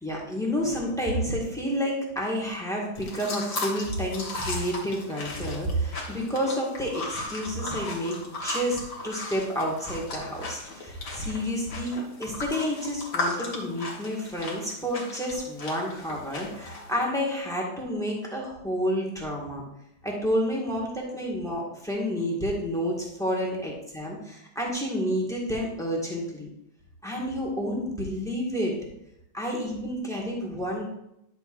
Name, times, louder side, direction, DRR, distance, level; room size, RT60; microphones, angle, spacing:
voice 1, 0.0-19.6 20.0-26.5 27.0-28.7 29.3-30.9, equal, ahead, -2 dB, 1.5 m, -30 dB
sound 1, 2.9-16.9, left 2 dB, 45° left, 1.6 m, -36 dB
10.5 x 6.6 x 2.6 m, 0.81 s
omnidirectional pair, 2.3 m